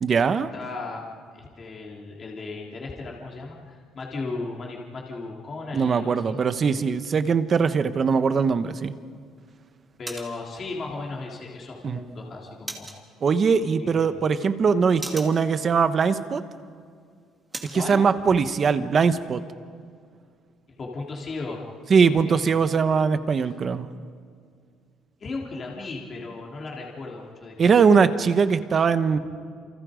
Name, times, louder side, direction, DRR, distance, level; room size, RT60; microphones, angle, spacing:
voice 1, 0.0-0.5 5.7-8.9 11.8-12.0 13.2-16.4 17.7-19.4 21.9-23.9 27.6-29.2, right 5 dB, 30° right, 11 dB, 1.1 m, -21 dB
voice 2, 0.5-6.4 10.0-12.9 13.8-14.1 17.7-18.0 20.8-21.6 22.0-22.4 25.2-27.9, left 3 dB, 30° left, -2 dB, 3.4 m, -36 dB
sound 1, 8.4-17.9, right 2 dB, 10° right, 2.6 m, -44 dB
29.5 x 28.0 x 5.2 m, 2.2 s
cardioid pair, 160°, 0 cm